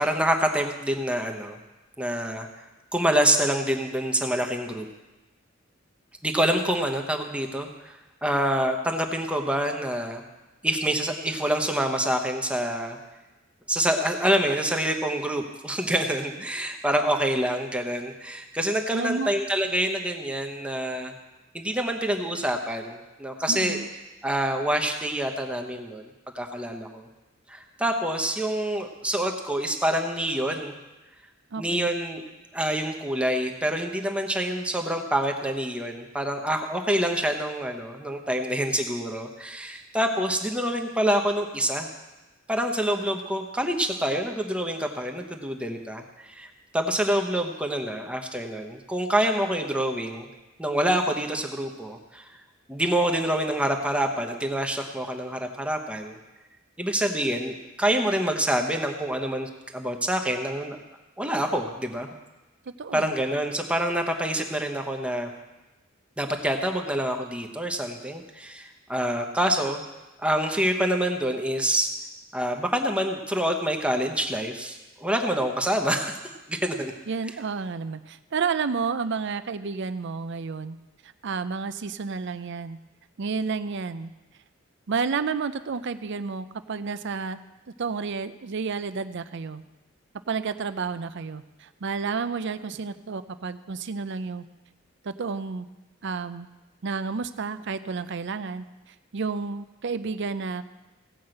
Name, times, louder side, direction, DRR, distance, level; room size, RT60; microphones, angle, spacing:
voice 1, 0.0-1.6 2.0-2.6 2.9-4.9 6.2-7.9 8.2-10.2 10.6-13.0 13.7-21.1 21.5-23.8 24.2-26.1 26.3-27.1 27.5-30.8 31.6-32.2 32.5-41.9 42.5-46.5 46.7-50.3 50.6-52.3 52.7-56.2 56.8-60.8 61.2-62.1 62.9-65.3 66.2-69.8 70.2-71.9 72.3-76.2 76.5-76.9, right 1 dB, 5° right, 4 dB, 1.0 m, -26 dB
voice 2, 18.9-19.3 23.5-23.9 31.5-31.9 62.8-63.1 77.1-80.8 81.0-82.8 83.2-84.1 84.9-87.4 87.8-89.6 90.3-94.5 95.0-95.7 96.0-96.5 96.8-98.6 99.1-100.6, right 5 dB, 60° right, 12 dB, 0.5 m, -31 dB
16.5 x 5.6 x 7.8 m, 1.1 s
head